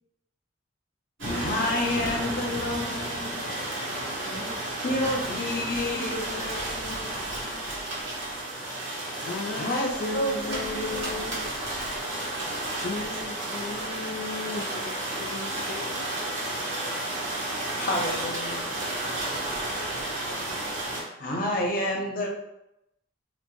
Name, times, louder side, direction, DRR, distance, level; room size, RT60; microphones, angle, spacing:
voice 1, 1.2-3.4 4.8-7.2 9.5-11.2 17.8-18.7 21.2-22.3, left 1 dB, 45° left, 0 dB, 0.6 m, -30 dB
sound 1, 1.2-21.0, right 1 dB, 75° right, 1.0 m, -32 dB
voice 2, 4.2-7.7, equal, 40° right, 1 dB, 0.5 m, -47 dB
voice 3, 9.1-9.7 10.0-11.5 12.8-15.9, left 3 dB, 90° left, 4 dB, 0.4 m, -35 dB
4.1 x 2.1 x 3.0 m, 0.86 s
head